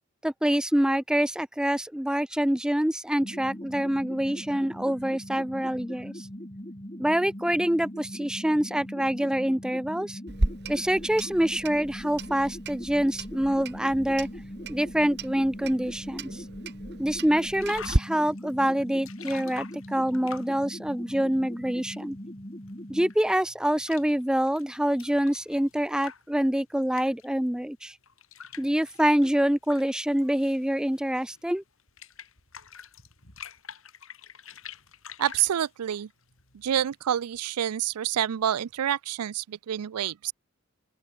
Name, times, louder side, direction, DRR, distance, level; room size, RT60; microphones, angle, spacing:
voice 1, 0.2-6.3 7.0-10.2 10.7-14.3 14.7-16.4 17.0-22.2 22.9-27.9 28.6-31.6, equal, 5° right, 0.5 m, -26 dB
sound 1, 3.2-23.1, equal, 25° left, 4.2 m, -41 dB
Clock, 10.3-18.0, right 1 dB, 50° right, 1.9 m, -34 dB
sound 2, 17.6-20.7 21.5-27.3 28.0-37.3, left 7 dB, 60° left, 6.9 m, -47 dB
voice 2, 35.2-36.1 36.5-40.3, right 10 dB, 90° right, 0.4 m, -28 dB
open air
head